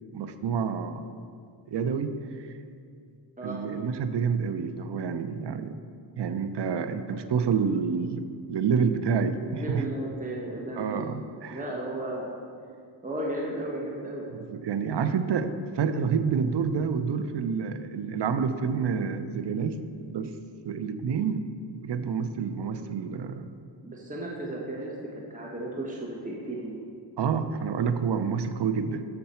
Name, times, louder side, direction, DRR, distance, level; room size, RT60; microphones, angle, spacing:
voice 1, 0.1-1.0 1.7-2.5 3.4-5.8 6.2-9.9 10.8-11.6 14.3-20.4 20.6-21.5 21.8-23.5 27.2-29.0, right 6 dB, 60° right, 10 dB, 0.6 m, -28 dB
voice 2, 9.0-11.0 11.5-12.3 13.0-14.3 23.8-26.8, right 1 dB, 15° right, -3 dB, 1.2 m, -35 dB
6.8 x 6.7 x 4.3 m, 2.3 s
cardioid pair, 40°, 47 cm